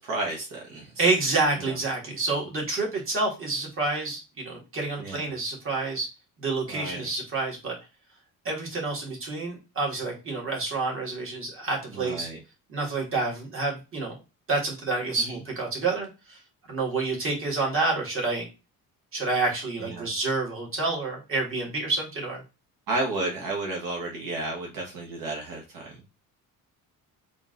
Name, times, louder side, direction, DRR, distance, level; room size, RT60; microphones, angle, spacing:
voice 1, 0.0-1.0 1.6-1.8 5.0-5.3 6.7-7.1 11.9-12.4 15.2-15.4 19.8-20.1 22.9-25.9, right 2 dB, 65° right, -1 dB, 1.2 m, -32 dB
voice 2, 1.0-6.1 6.4-7.7 8.5-12.3 12.7-14.2 14.5-16.4 16.7-18.5 19.1-22.4, right 3 dB, 35° right, -1 dB, 1.8 m, -28 dB
3.7 x 2.6 x 3.7 m, 0.28 s
cardioid pair, 135°, 35 cm